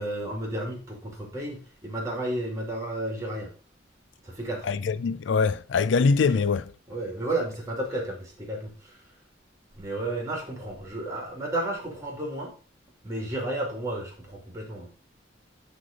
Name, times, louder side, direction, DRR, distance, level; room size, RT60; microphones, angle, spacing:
voice 1, 0.0-3.5 4.2-4.7 6.3-6.5 6.9-8.9 9.7-12.5 13.0-14.9, right 1 dB, 15° right, 2.4 m, -32 dB
voice 2, 4.6-6.7, left 5 dB, 80° left, 0.4 m, -23 dB
9.9 x 3.4 x 5.0 m
head